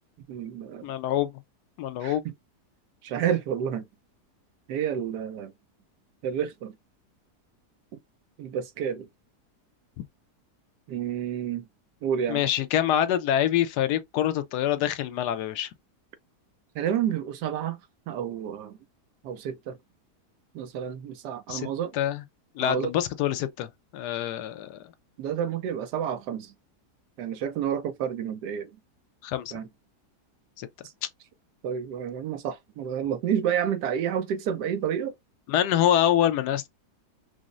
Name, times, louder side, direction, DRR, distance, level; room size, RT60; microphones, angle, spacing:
voice 1, 0.3-0.9 2.0-2.3 3.0-3.9 4.7-5.5 6.2-6.7 8.4-9.1 10.9-11.6 12.0-12.5 16.7-17.8 18.1-18.8 19.2-19.8 20.5-21.9 22.6-22.9 25.2-26.5 27.2-28.7 29.5-29.7 31.6-35.1, right 9 dB, 90° right, 1.2 m, -30 dB
voice 2, 0.8-1.4 1.8-2.2 10.0-10.1 12.3-15.7 21.5-21.7 21.9-22.2 22.6-24.8 29.2-29.5 30.6-30.7 31.0-31.1 35.5-36.7, left 11 dB, 80° left, 1.2 m, -25 dB
5.0 x 2.0 x 2.4 m
omnidirectional pair, 1.7 m